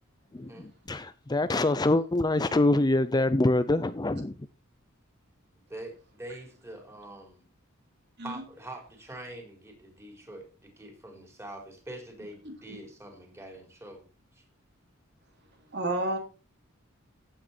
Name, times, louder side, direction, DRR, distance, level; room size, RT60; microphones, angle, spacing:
voice 1, 0.3-4.3, left 2 dB, 20° left, 0.5 m, -25 dB
voice 2, 5.5-7.5 8.2-14.0 14.3-14.4, right 1 dB, 15° right, 4.3 m, -44 dB
voice 3, 12.4-12.8 15.7-16.2, right 2 dB, 55° right, 3.4 m, -31 dB
14.5 x 9.0 x 4.4 m
head